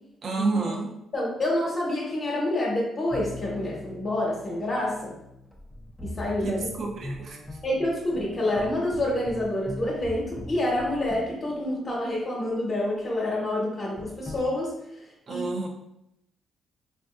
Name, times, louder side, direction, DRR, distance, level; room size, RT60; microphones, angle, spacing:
voice 1, 0.2-0.9 6.4-7.4 15.3-15.7, right 3 dB, 55° right, 1 dB, 0.6 m, -29 dB
voice 2, 1.1-5.1 6.0-6.7 7.6-14.7 15.3-15.4, left 1 dB, 40° left, -5 dB, 1.0 m, -27 dB
sound 1, 3.1-12.5 14.0-14.4, left 1 dB, 5° left, 0.5 m, -41 dB
3.4 x 2.6 x 2.4 m, 0.81 s
cardioid pair, 90°, 0 cm